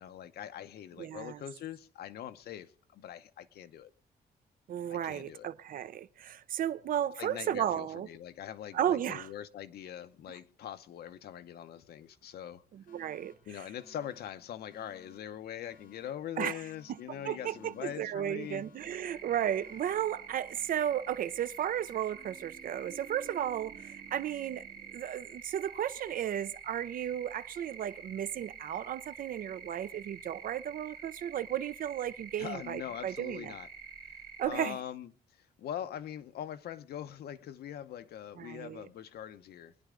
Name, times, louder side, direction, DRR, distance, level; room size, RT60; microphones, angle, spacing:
voice 1, 0.0-3.9 4.9-5.5 7.2-12.6 13.5-18.6 32.4-33.7 34.5-35.1 35.6-39.7, left 10 dB, 80° left, 0.9 m, -42 dB
voice 2, 1.0-1.4 4.7-8.1 8.7-9.3 10.3-10.4 12.7-13.3 16.4-16.6 16.9-17.0 17.2-33.5 34.4-34.8 38.4-38.9, right 10 dB, 60° right, 0.6 m, -34 dB
Alarm, 12.9-20.9, left 3 dB, 60° left, 2.3 m, -62 dB
sound 1, 17.1-25.0, right 9 dB, 75° right, 2.4 m, -56 dB
sound 2, 18.8-34.5, right 5 dB, 30° right, 4.4 m, -48 dB
23.5 x 10.0 x 3.8 m
wide cardioid pair, 165°, 16 cm